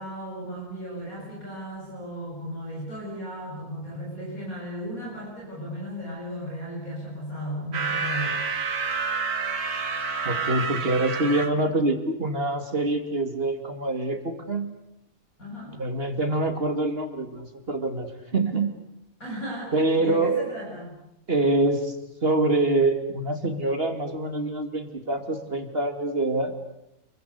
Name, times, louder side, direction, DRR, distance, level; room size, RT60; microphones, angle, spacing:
voice 1, 0.0-8.4 15.4-15.7 19.2-20.9, equal, 70° left, -3 dB, 8.0 m, -35 dB
sound 1, 7.7-11.5, right 5 dB, 85° right, 2.5 m, -28 dB
voice 2, 10.2-14.7 15.8-18.7 19.7-20.4 21.3-22.0 22.2-26.5, right 2 dB, 40° right, 8 dB, 2.7 m, -25 dB
28.5 x 23.0 x 8.3 m, 0.84 s
omnidirectional pair, 1.6 m